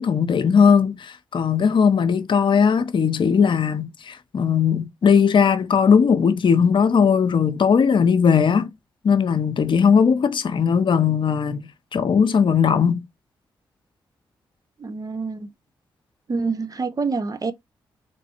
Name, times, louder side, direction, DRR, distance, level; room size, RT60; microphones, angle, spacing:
voice 1, 0.0-8.7 9.0-13.0, left 6 dB, 60° left, 0.7 m, -18 dB
voice 2, 14.8-15.5 16.3-17.5, right 4 dB, 40° right, 0.7 m, -26 dB
3.2 x 3.2 x 2.8 m
hypercardioid pair, 40°, 9 cm